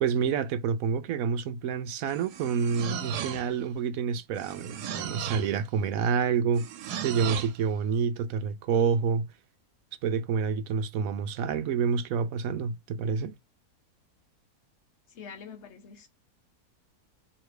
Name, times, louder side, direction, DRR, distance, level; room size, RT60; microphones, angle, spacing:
voice 1, 0.0-6.7 7.0-9.3 10.0-13.3, right 6 dB, 70° right, 1.0 m, -28 dB
sound 1, 2.1-3.7 4.4-5.6 6.6-7.6, right 9 dB, 90° right, 1.3 m, -36 dB
voice 2, 15.1-16.1, left 6 dB, 50° left, 1.1 m, -45 dB
3.3 x 3.1 x 4.8 m
omnidirectional pair, 1.7 m